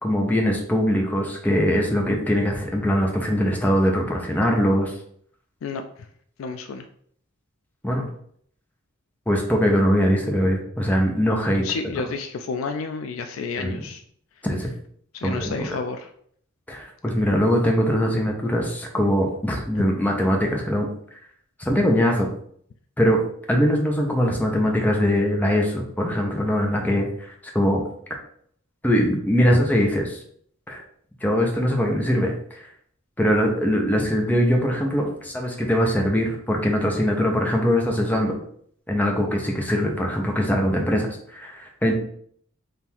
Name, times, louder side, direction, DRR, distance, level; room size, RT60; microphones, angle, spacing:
voice 1, 0.0-4.9 7.8-8.0 9.3-11.6 13.6-13.7 14.4-14.7 15.2-15.7 16.7-20.9 21.6-22.3 23.0-23.2 23.5-27.3 27.5-27.8 28.8-30.2 30.7-30.8 31.2-32.6 33.2-38.3 38.9-41.9, equal, 10° left, 1 dB, 0.7 m, -22 dB
voice 2, 6.4-6.9 11.5-14.0 15.1-16.1, left 4 dB, 75° left, 7 dB, 0.3 m, -30 dB
3.6 x 2.6 x 4.4 m, 0.64 s
head